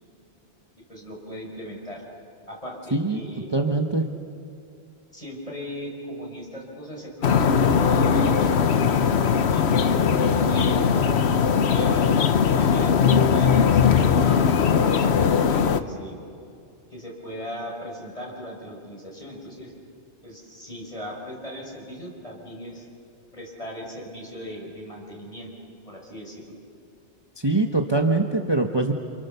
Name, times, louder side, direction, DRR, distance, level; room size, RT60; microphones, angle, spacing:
voice 1, 0.8-2.1 2.5-3.5 5.1-11.2 11.6-12.1 12.5-14.6 14.8-16.2 16.9-19.7 20.2-22.9 23.3-25.5 25.9-26.6, equal, 30° left, -1 dB, 5.7 m, -38 dB
voice 2, 3.5-4.0 27.4-28.9, right 2 dB, 25° right, 3 dB, 1.1 m, -23 dB
sound 1, 7.2-15.8, left 6 dB, 70° left, 1.2 m, -19 dB
29.0 x 28.5 x 6.9 m, 2.5 s
omnidirectional pair, 1.1 m